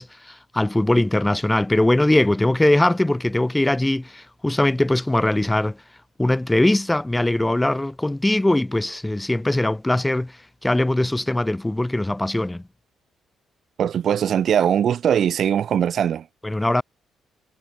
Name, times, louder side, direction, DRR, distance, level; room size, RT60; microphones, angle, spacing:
voice 1, 0.0-5.8 6.2-12.6 16.4-16.8, left 1 dB, 10° left, 6.6 m, -21 dB
voice 2, 13.8-16.3, right 9 dB, 60° right, 1.5 m, -20 dB
cardioid pair, 90°, 0 cm